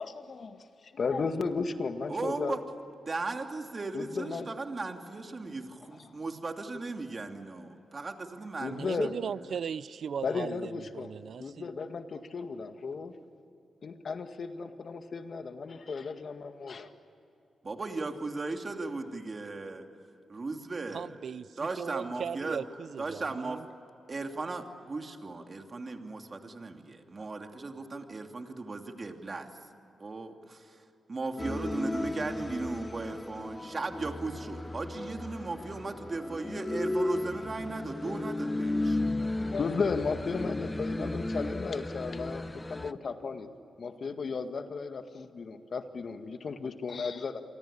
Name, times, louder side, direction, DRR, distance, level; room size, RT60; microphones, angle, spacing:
voice 1, 0.0-0.5 0.8-2.6 3.9-4.5 6.0-6.1 8.6-9.1 10.2-11.1 11.4-13.1 13.8-16.9 39.4-43.5 43.8-47.4, left 4 dB, 60° left, 1.9 m, -35 dB
voice 2, 2.1-2.6 3.1-9.4 17.6-19.9 20.3-21.1 21.6-22.6 23.0-23.6 24.1-29.5 30.0-39.0, right 3 dB, 40° right, 2.7 m, -37 dB
voice 3, 8.8-11.7 20.9-23.7, right 7 dB, 70° right, 0.5 m, -38 dB
sound 1, 31.4-42.9, left 2 dB, 20° left, 0.9 m, -34 dB
28.5 x 24.0 x 8.7 m
cardioid pair, 70°, 0 cm